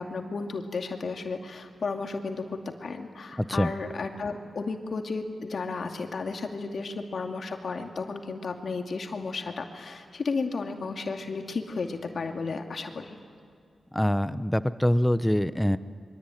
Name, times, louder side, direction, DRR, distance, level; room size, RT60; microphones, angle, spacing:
voice 1, 0.0-13.2, left 4 dB, 70° left, 4 dB, 2.4 m, -33 dB
voice 2, 3.4-3.7 13.9-15.8, equal, 5° left, 14 dB, 0.9 m, -24 dB
25.5 x 23.5 x 9.3 m, 2.2 s
cardioid pair, 60°, 0 cm